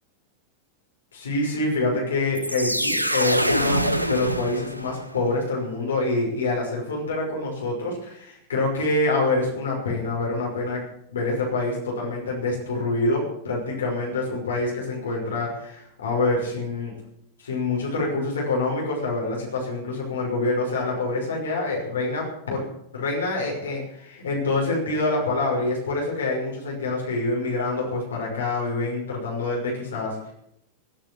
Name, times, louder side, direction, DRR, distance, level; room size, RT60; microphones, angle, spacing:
voice 1, 1.1-10.8 11.1-16.9 17.4-22.6 22.9-30.3, left 2 dB, 65° left, -2 dB, 5.8 m, -26 dB
sound 1, 2.3-5.1, equal, 90° right, 1.1 m, -24 dB
17.5 x 9.0 x 8.6 m, 0.74 s
figure-of-eight pair, 90°, 0 cm